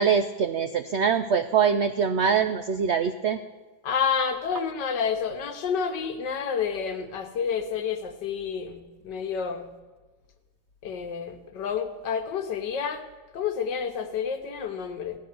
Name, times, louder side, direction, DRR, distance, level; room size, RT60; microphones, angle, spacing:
voice 1, 0.0-3.4, right 6 dB, 75° right, 9 dB, 0.6 m, -23 dB
voice 2, 3.8-9.7 10.8-13.0 13.3-15.2, left 6 dB, 80° left, 7 dB, 1.7 m, -29 dB
15.5 x 9.4 x 6.6 m, 1.2 s
omnidirectional pair, 1.9 m